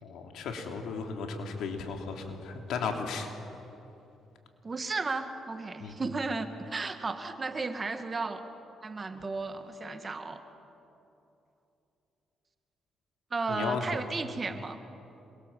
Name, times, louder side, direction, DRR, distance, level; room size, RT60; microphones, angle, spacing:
voice 1, 0.0-3.3 5.8-5.9 13.5-13.8, left 5 dB, 80° left, 3 dB, 3.2 m, -35 dB
voice 2, 4.6-8.4 8.8-10.4 13.3-14.8, right 3 dB, 30° right, 8 dB, 1.9 m, -34 dB
27.5 x 23.0 x 7.5 m, 2.9 s
cardioid pair, 90°, 0 cm